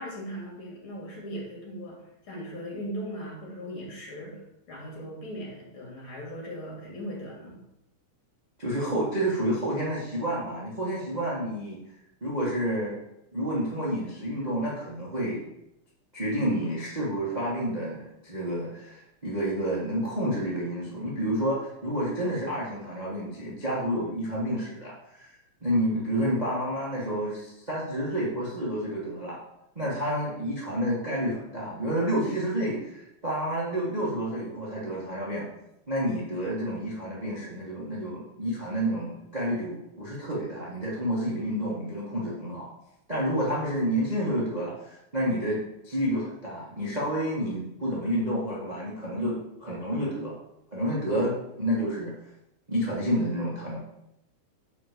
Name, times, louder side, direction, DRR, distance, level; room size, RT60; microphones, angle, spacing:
voice 1, 0.0-4.4 4.7-7.6, equal, 40° left, -3 dB, 3.1 m, -38 dB
voice 2, 8.6-11.8 12.2-13.0 13.3-15.4 16.1-25.3 25.6-29.4 29.7-35.5 35.9-42.7 43.1-45.6 45.8-50.3 50.7-52.1 52.7-53.8, equal, 55° right, -5 dB, 0.4 m, -29 dB
6.3 x 4.9 x 6.6 m, 0.83 s
omnidirectional pair, 3.8 m